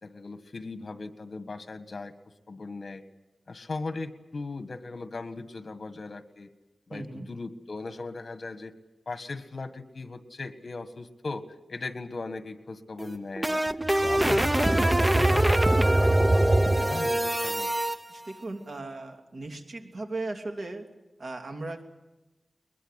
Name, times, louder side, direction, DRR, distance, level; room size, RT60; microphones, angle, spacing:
voice 1, 0.0-2.1 2.5-3.0 3.5-6.5 6.9-8.7 9.1-11.4 11.7-13.6 14.0-17.7, left 3 dB, 60° left, 10 dB, 1.7 m, -38 dB
voice 2, 6.9-7.3 18.1-20.9 21.2-21.8, right 2 dB, 65° right, 4 dB, 2.9 m, -37 dB
sound 1, 13.0-18.0, right 1 dB, 15° right, 0.8 m, -23 dB
22.0 x 21.0 x 8.3 m, 1.0 s
wide cardioid pair, 95°, 0 cm